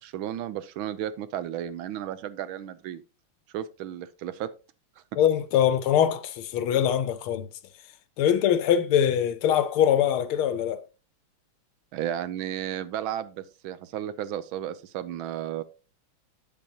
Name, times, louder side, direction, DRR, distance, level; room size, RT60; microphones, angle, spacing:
voice 1, 0.0-3.0 3.5-4.5 5.1-5.2 11.9-15.6, right 11 dB, 75° right, 1.4 m, -33 dB
voice 2, 5.2-7.5 8.2-10.8, left 9 dB, 80° left, 1.6 m, -23 dB
9.3 x 7.3 x 2.8 m
omnidirectional pair, 2.4 m